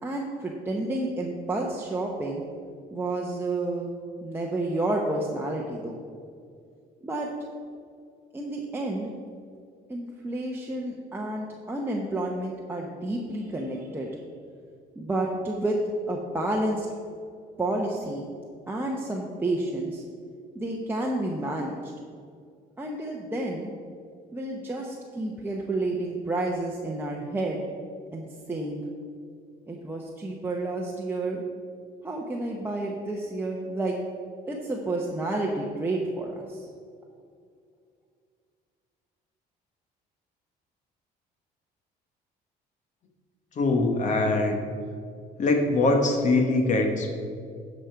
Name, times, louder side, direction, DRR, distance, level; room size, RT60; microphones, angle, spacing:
voice 1, 0.0-2.4 2.9-3.9 4.2-6.0 7.0-7.3 8.3-9.1 9.9-14.1 15.0-15.8 16.1-16.9 17.6-18.3 18.7-20.0 20.5-21.9 22.8-23.7 24.3-27.6 28.1-28.8 29.7-31.4 32.0-34.0 34.5-36.6, right 2 dB, 15° right, -2 dB, 0.9 m, -30 dB
voice 2, 43.6-44.6 45.4-47.1, left 2 dB, 45° left, 3 dB, 1.2 m, -23 dB
12.5 x 5.2 x 4.6 m, 2.3 s
cardioid pair, 110°, 17 cm